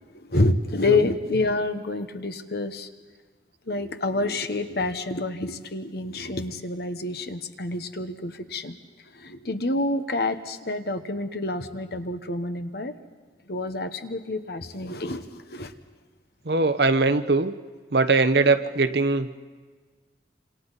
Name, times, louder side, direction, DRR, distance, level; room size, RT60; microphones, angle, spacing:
voice 1, 0.0-2.9 3.7-8.8 9.1-12.9 13.5-15.7, left 2 dB, 60° left, 8 dB, 1.2 m, -28 dB
voice 2, 0.8-1.2 16.5-17.5 17.9-19.4, right 3 dB, 65° right, 9 dB, 1.0 m, -21 dB
28.0 x 26.5 x 4.1 m, 1.5 s
head